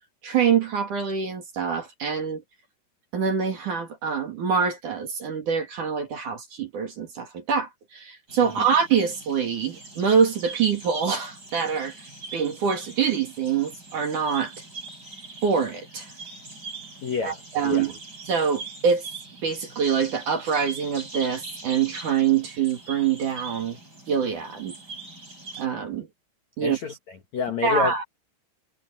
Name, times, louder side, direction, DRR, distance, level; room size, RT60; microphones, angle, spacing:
voice 1, 0.2-2.4 3.1-11.9 12.3-14.5 15.4-16.1 17.2-17.9 18.3-19.0 19.4-23.8 24.1-24.7 25.6-26.1 26.6-26.8 27.6-28.0, right 6 dB, 50° right, 3.1 m, -25 dB
sound 1, 8.3-25.7, right 3 dB, 20° right, 7.0 m, -42 dB
voice 2, 17.0-17.9 26.6-28.0, left 5 dB, 70° left, 1.7 m, -29 dB
omnidirectional pair, 5.9 m